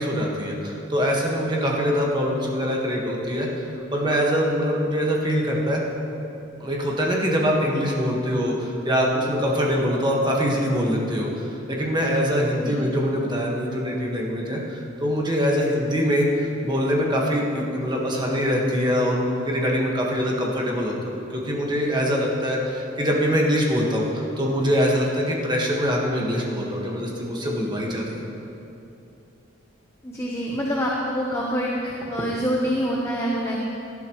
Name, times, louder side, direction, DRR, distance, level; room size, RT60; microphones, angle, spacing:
voice 1, 0.0-5.8 6.6-28.2, equal, 20° right, -2 dB, 1.6 m, -23 dB
voice 2, 30.0-33.6, equal, 15° left, -3 dB, 1.0 m, -26 dB
17.5 x 11.5 x 3.1 m, 2.8 s
head